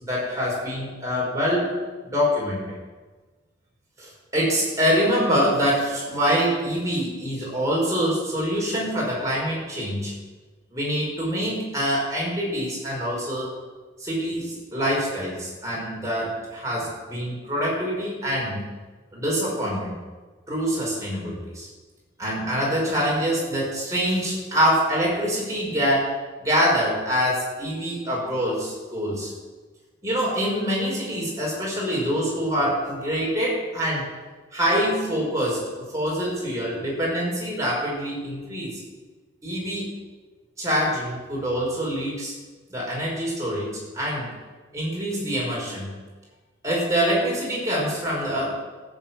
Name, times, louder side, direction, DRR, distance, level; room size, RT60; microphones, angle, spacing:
voice 1, 0.1-1.8 2.0-2.8 4.0-10.1 10.7-13.5 14.0-18.6 19.1-19.9 20.5-21.7 22.2-26.2 26.4-29.3 30.0-34.1 34.5-38.8 39.4-39.9 40.6-42.3 42.7-44.3 44.7-45.9 46.6-48.5, equal, 15° right, -5 dB, 5.1 m, -25 dB
14.0 x 7.2 x 8.9 m, 1.3 s
head